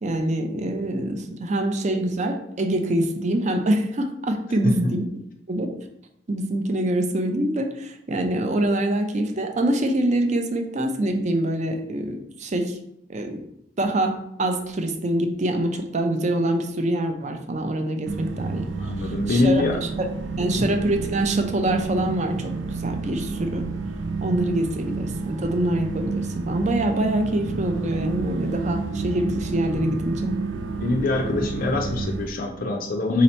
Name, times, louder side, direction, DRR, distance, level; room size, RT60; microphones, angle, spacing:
voice 1, 0.0-5.1 5.5-5.7 6.3-12.8 13.1-13.4 13.8-18.7 19.0-19.6 20.0-20.1 20.4-23.7 24.2-30.3, right 1 dB, 40° right, 5 dB, 0.5 m, -25 dB
sound 1, 18.0-32.3, right 3 dB, 90° right, 0.5 m, -30 dB
voice 2, 18.8-19.8 20.3-20.7 30.8-33.2, left 3 dB, 50° left, 3 dB, 0.4 m, -23 dB
4.1 x 2.8 x 4.2 m, 0.76 s
head